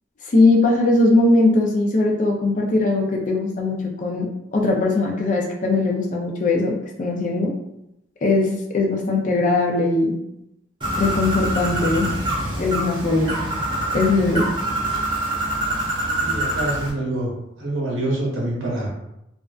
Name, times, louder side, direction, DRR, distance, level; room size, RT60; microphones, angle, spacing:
voice 1, 0.3-7.5 8.2-10.2 11.0-12.1 12.6-13.3 13.9-14.5, left 2 dB, 40° left, 0 dB, 0.4 m, -20 dB
Bird, 10.8-16.9, right 1 dB, 25° right, 0.4 m, -25 dB
voice 2, 16.2-17.3 17.6-18.9, right 1 dB, 80° right, -4 dB, 0.9 m, -26 dB
2.4 x 2.2 x 2.3 m, 0.84 s
head